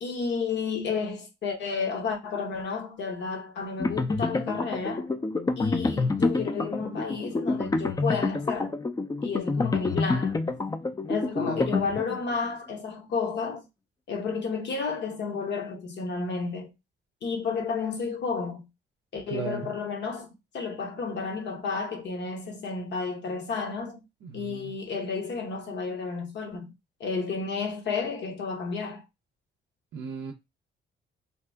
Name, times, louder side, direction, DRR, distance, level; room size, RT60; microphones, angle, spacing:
voice 1, 0.0-5.1 5.6-8.7 9.2-10.4 11.1-13.6 14.1-16.7 17.2-18.7 19.1-20.3 20.5-24.0 24.3-26.7 27.0-29.0, left 5 dB, 60° left, 1.0 m, -31 dB
sound 1, 3.8-12.4, left 3 dB, 20° left, 0.4 m, -28 dB
voice 2, 11.4-11.8 19.3-19.7 24.2-24.7 29.9-30.3, right 5 dB, 70° right, 0.5 m, -36 dB
2.8 x 2.4 x 3.4 m
cardioid pair, 90°, 20 cm